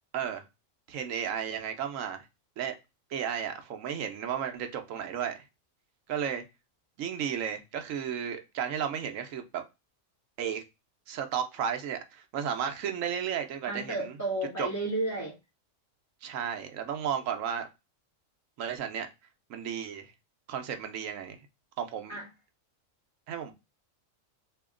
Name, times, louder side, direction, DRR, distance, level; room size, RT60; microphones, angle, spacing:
voice 1, 0.9-2.3 2.6-2.8 3.1-5.4 6.1-6.4 7.0-9.6 10.4-10.6 11.1-14.1 14.6-14.7 16.2-17.7 18.6-19.1 19.5-20.1 20.5-21.5 21.8-22.2 23.3-23.5, right 8 dB, 80° right, 1.1 m, -33 dB
voice 2, 13.7-15.4 22.1-22.3, right 2 dB, 15° left, 1.2 m, -32 dB
2.9 x 2.8 x 3.6 m
omnidirectional pair, 1.4 m